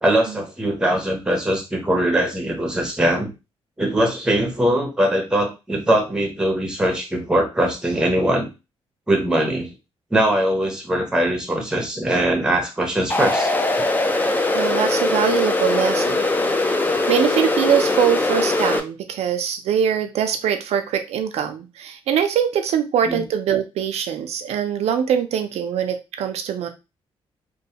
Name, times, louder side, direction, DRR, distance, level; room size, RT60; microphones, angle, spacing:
voice 1, 0.0-3.3 3.8-8.5 9.1-9.7 10.1-13.5 23.0-23.2, right 1 dB, 5° right, 2 dB, 0.8 m, -21 dB
sound 1, 13.1-18.8, left 2 dB, 15° left, 0.4 m, -21 dB
voice 2, 14.5-16.3 16.5-16.7 17.1-26.7, right 8 dB, 85° right, 7 dB, 0.4 m, -22 dB
3.0 x 2.1 x 2.8 m, 0.26 s
cardioid pair, 115°, 11 cm